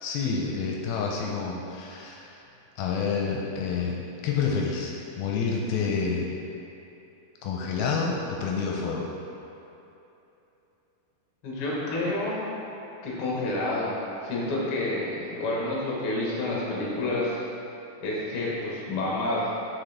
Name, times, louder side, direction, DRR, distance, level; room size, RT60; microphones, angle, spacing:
voice 1, 0.0-2.4 2.8-4.0 4.2-6.3 7.4-9.1, left 5 dB, 80° left, -1 dB, 2.4 m, -28 dB
voice 2, 11.4-12.4 13.0-13.9 14.2-17.4 18.0-19.5, left 2 dB, 60° left, -5 dB, 1.5 m, -29 dB
7.8 x 6.2 x 3.4 m, 3.0 s
omnidirectional pair, 4.6 m